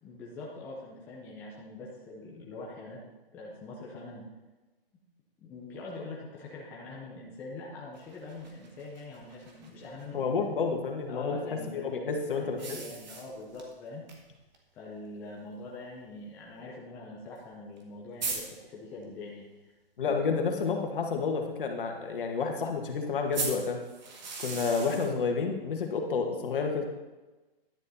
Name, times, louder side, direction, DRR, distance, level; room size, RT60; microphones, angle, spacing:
voice 1, 0.0-3.0 3.3-4.2 5.4-10.3 11.1-14.1 14.8-19.7 20.0-20.1, left 2 dB, 5° left, -4 dB, 0.5 m, -43 dB
sound 1, 7.9-10.0 12.6-13.7 14.1-14.2 14.5-14.6 15.6-15.7 17.4-17.5 17.8-17.9 18.2-18.4 23.3-25.1, right 4 dB, 45° right, 1.7 m, -38 dB
voice 2, 10.1-11.4 11.7-12.6 20.0-23.8 24.4-26.9, left 5 dB, 60° left, 3 dB, 1.7 m, -30 dB
11.0 x 6.5 x 4.2 m, 1.1 s
hypercardioid pair, 155°, 30 cm